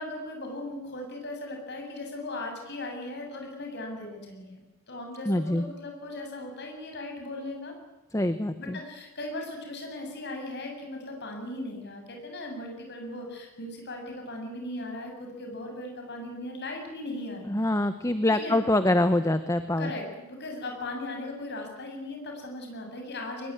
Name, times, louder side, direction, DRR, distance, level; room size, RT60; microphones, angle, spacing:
voice 1, 0.0-7.7 8.6-17.7 18.3-18.6 19.8-23.5, left 2 dB, 50° left, 2 dB, 7.3 m, -38 dB
voice 2, 5.3-5.6 8.1-8.8 17.5-19.9, left 1 dB, 15° left, 10 dB, 0.9 m, -25 dB
22.5 x 22.0 x 9.7 m, 1.0 s
head